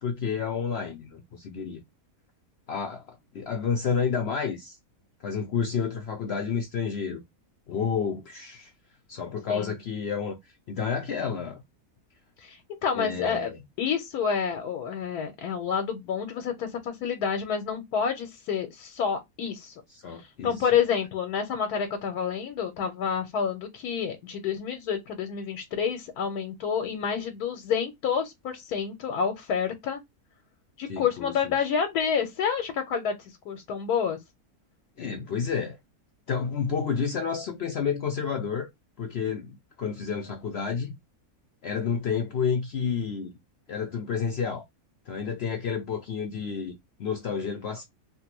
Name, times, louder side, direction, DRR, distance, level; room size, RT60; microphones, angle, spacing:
voice 1, 0.0-1.8 2.7-4.8 5.2-7.2 7.7-8.7 9.1-10.4 10.7-11.6 12.9-13.6 19.9-20.5 30.9-31.5 35.0-35.8 36.3-38.7 39.0-41.0 41.6-43.3 43.7-44.6 45.1-47.8, left 6 dB, 70° left, 0.6 m, -30 dB
voice 2, 12.4-13.5 13.8-19.7 20.4-30.0 30.8-33.2 33.4-34.2, left 7 dB, 85° left, 1.2 m, -28 dB
3.3 x 2.2 x 2.9 m
omnidirectional pair, 1.6 m